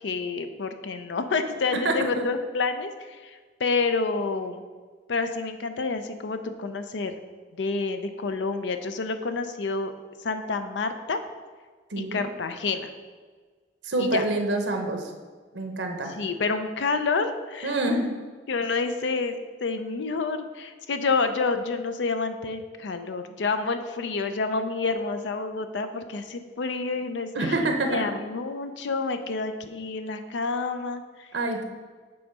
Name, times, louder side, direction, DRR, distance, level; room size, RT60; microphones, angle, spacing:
voice 1, 0.0-4.6 5.1-7.1 7.6-9.9 10.2-11.2 12.0-12.9 14.0-14.2 16.2-17.7 18.5-27.6 27.8-31.3, left 4 dB, 80° left, 8 dB, 0.5 m, -28 dB
voice 2, 1.8-2.2 11.9-12.2 13.8-15.1 15.5-16.1 17.6-18.1 27.3-28.1 31.3-31.6, right 2 dB, 85° right, 4 dB, 0.9 m, -26 dB
7.7 x 3.5 x 5.3 m, 1.5 s
head